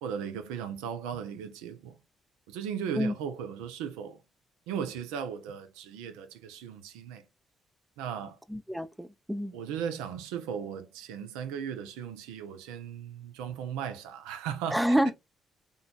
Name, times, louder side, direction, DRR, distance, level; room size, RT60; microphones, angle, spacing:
voice 1, 0.0-2.0 2.5-4.2 4.7-7.2 8.0-8.4 9.5-15.1, right 8 dB, 85° right, 0.5 m, -37 dB
voice 2, 8.5-9.5 14.7-15.1, equal, 5° right, 0.4 m, -27 dB
3.8 x 2.3 x 2.3 m
hypercardioid pair, 50°, 0 cm